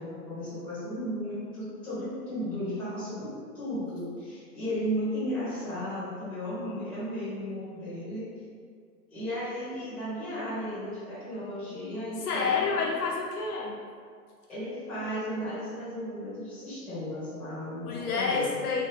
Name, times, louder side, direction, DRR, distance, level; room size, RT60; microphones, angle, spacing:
voice 1, 0.0-8.3 9.1-12.9 14.5-18.6, equal, ahead, -12 dB, 0.8 m, -35 dB
voice 2, 12.3-13.8 17.8-18.9, left 4 dB, 65° left, -2 dB, 0.6 m, -28 dB
2.8 x 2.0 x 3.3 m, 2.1 s
hypercardioid pair, 140°, 50 cm